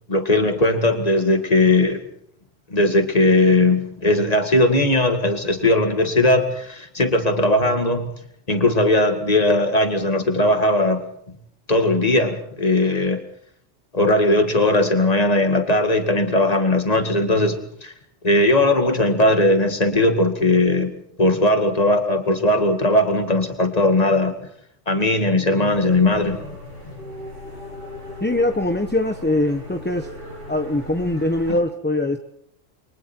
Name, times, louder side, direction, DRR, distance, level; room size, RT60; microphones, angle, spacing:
voice 1, 0.1-2.0 2.7-8.1 8.5-11.4 11.7-13.2 13.9-17.9 18.2-20.9 21.2-24.4 24.9-26.4, left 2 dB, 30° left, 6 dB, 2.3 m, -18 dB
sound 1, 25.7-31.5, left 1 dB, 80° right, 6.8 m, -38 dB
voice 2, 28.2-30.1 30.5-32.2, left 1 dB, 10° left, 6 dB, 1.0 m, -22 dB
29.5 x 23.5 x 4.5 m, 0.68 s
omnidirectional pair, 1.2 m